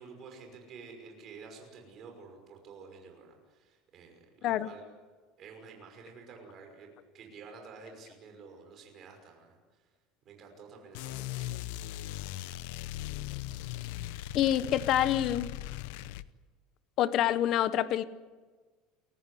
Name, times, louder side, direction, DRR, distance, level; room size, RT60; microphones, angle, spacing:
voice 1, 0.0-4.8 5.4-6.9 7.1-9.9 10.2-11.6, right 5 dB, 30° right, 3 dB, 5.7 m, -50 dB
sound 1, 10.9-16.3, left 14 dB, 75° left, 0.8 m, -39 dB
voice 2, 14.3-15.5 17.0-18.0, left 11 dB, 40° left, 14 dB, 1.0 m, -27 dB
29.0 x 15.0 x 10.0 m, 1.4 s
cardioid pair, 170°, 0 cm